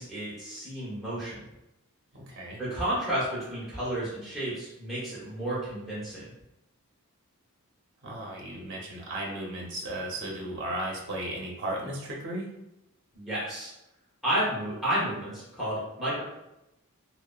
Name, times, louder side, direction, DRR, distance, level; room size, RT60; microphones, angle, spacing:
voice 1, 0.0-1.4 2.6-6.3 13.1-13.7 14.2-16.2, right 1 dB, ahead, -10 dB, 0.8 m, -31 dB
voice 2, 2.1-2.6 8.0-12.5, right 1 dB, 55° right, -2 dB, 0.6 m, -35 dB
2.7 x 2.0 x 2.2 m, 0.89 s
head